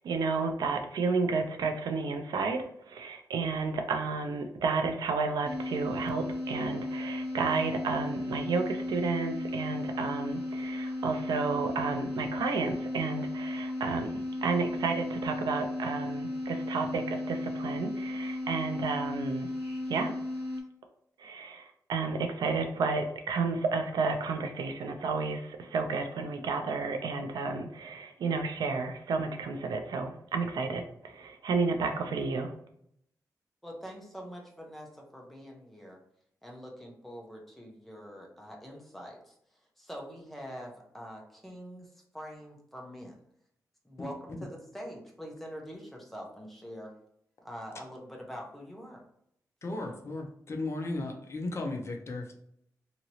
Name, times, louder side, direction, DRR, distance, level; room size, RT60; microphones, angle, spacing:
voice 1, 0.0-19.5 19.9-20.1 21.2-32.5, right 4 dB, 90° right, 5 dB, 0.4 m, -31 dB
sound 1, 5.4-20.6, left 1 dB, 30° right, 1.3 m, -35 dB
voice 2, 33.6-36.0 36.4-43.2 43.8-46.9 47.4-49.0, equal, 5° left, -1 dB, 0.7 m, -45 dB
voice 3, 49.6-52.3, left 2 dB, 40° left, 2 dB, 0.6 m, -35 dB
2.9 x 2.8 x 2.7 m, 0.72 s
wide cardioid pair, 135°, 7 cm